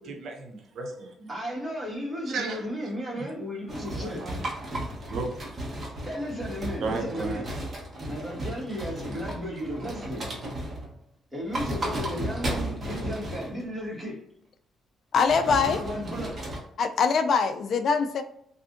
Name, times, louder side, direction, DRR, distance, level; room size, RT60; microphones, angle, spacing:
voice 1, 0.0-1.3 2.3-2.6 3.1-3.2 3.9-4.5 5.1-5.3 6.8-7.4, right 4 dB, 70° right, 2 dB, 0.6 m, -34 dB
voice 2, 1.3-4.3 6.0-7.5 8.1-10.3 11.3-14.2 15.5-16.4, equal, 15° right, -4 dB, 1.5 m, -34 dB
sound 1, 3.7-11.0 11.4-13.7 15.3-16.6, right 1 dB, 35° right, 1.1 m, -34 dB
voice 3, 15.1-15.8 16.8-18.2, left 5 dB, 60° left, 9 dB, 0.3 m, -23 dB
3.4 x 2.5 x 2.5 m, 0.73 s
cardioid pair, 90°, 0 cm